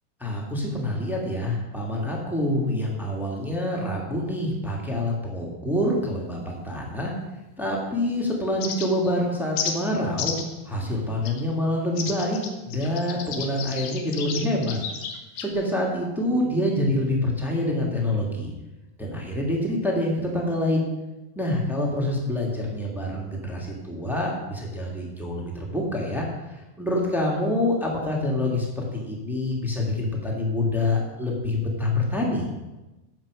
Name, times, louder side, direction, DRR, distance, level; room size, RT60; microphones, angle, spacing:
voice 1, 0.2-7.1 7.6-10.3 10.6-14.8 15.4-18.5 19.0-20.9 21.3-26.2 26.8-32.5, left 1 dB, ahead, -1 dB, 0.8 m, -26 dB
sound 1, 8.6-9.1 9.6-9.8 10.2-10.5 11.2-11.4 12.0-15.5, left 7 dB, 75° left, 2.7 m, -32 dB
15.0 x 6.0 x 6.3 m, 1.1 s
omnidirectional pair, 4.2 m